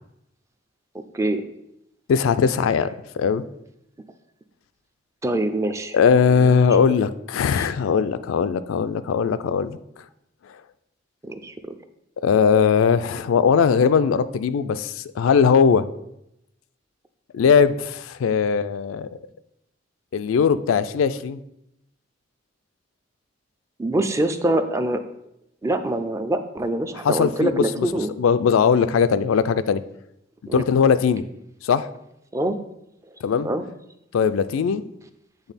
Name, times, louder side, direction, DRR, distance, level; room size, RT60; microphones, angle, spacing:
voice 1, 1.1-1.5 5.2-6.0 6.4-7.0 7.6-7.7 11.2-11.8 23.8-25.0 25.6-28.1 30.5-30.6 32.3-32.6 33.4-33.7, right 1 dB, 15° right, 8 dB, 0.4 m, -24 dB
voice 2, 2.1-3.5 5.9-9.8 12.2-15.8 17.3-19.1 20.1-21.4 27.0-27.9 28.2-29.8 30.5-31.2 31.6-31.9 33.2-33.5 34.1-34.8, left 6 dB, 90° left, 13 dB, 0.3 m, -19 dB
8.1 x 3.5 x 4.1 m, 0.82 s
head